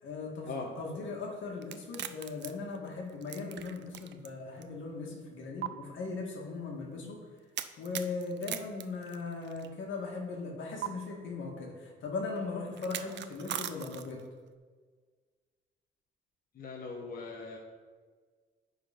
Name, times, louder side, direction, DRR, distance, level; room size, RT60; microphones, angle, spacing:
voice 1, 0.0-0.5 0.8-7.2 7.8-14.2, left 4 dB, 75° left, 0 dB, 1.8 m, -38 dB
sound 1, 1.6-4.3 4.6-4.7 5.6-5.7 7.6-9.7 10.8-10.9 12.8-14.3, right 11 dB, 65° right, 0.5 m, -39 dB
voice 2, 16.6-17.6, left 3 dB, 45° left, -1 dB, 1.2 m, -40 dB
9.3 x 4.1 x 5.1 m, 1.5 s
cardioid pair, 90°, 20 cm